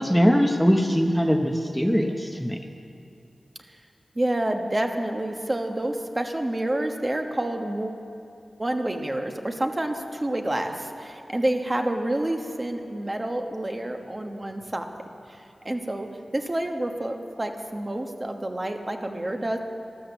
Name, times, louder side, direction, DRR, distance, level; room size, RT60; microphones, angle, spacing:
voice 1, 0.0-2.6, equal, ahead, 3 dB, 0.9 m, -21 dB
voice 2, 4.1-8.0 8.6-14.9 15.3-19.6, right 1 dB, 30° right, 4 dB, 1.2 m, -28 dB
13.0 x 12.5 x 7.2 m, 2.7 s
wide cardioid pair, 60°, 0 cm